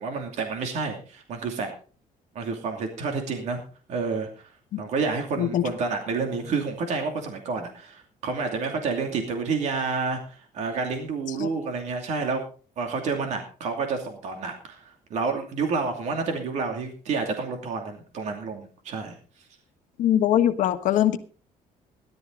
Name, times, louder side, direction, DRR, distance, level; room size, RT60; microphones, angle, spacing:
voice 1, 0.0-1.7 2.3-3.6 3.9-4.3 4.8-12.4 12.8-19.1, right 4 dB, 55° right, 2.7 m, -29 dB
voice 2, 20.0-21.2, left 11 dB, 65° left, 1.4 m, -22 dB
17.0 x 12.0 x 3.9 m
cardioid pair, 180°, 14 cm